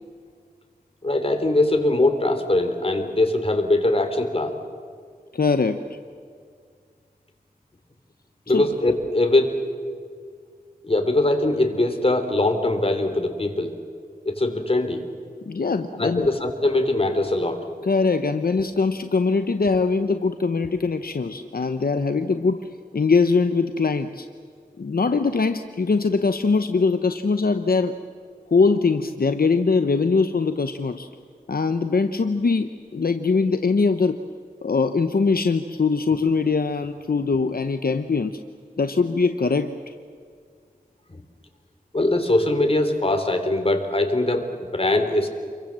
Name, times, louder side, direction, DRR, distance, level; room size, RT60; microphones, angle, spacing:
voice 1, 1.0-4.5 8.5-9.6 10.8-13.7 14.2-15.0 16.0-17.6 41.1-41.2 41.9-45.3, left 2 dB, 35° left, 6 dB, 3.3 m, -21 dB
voice 2, 5.3-6.0 8.5-8.7 15.5-16.3 17.8-22.7 22.9-24.3 24.8-27.9 28.5-31.1 31.5-34.2 34.6-38.4 38.8-39.9, left 4 dB, 70° left, 8 dB, 0.9 m, -22 dB
28.5 x 23.5 x 7.6 m, 2.1 s
wide cardioid pair, 70°, 16 cm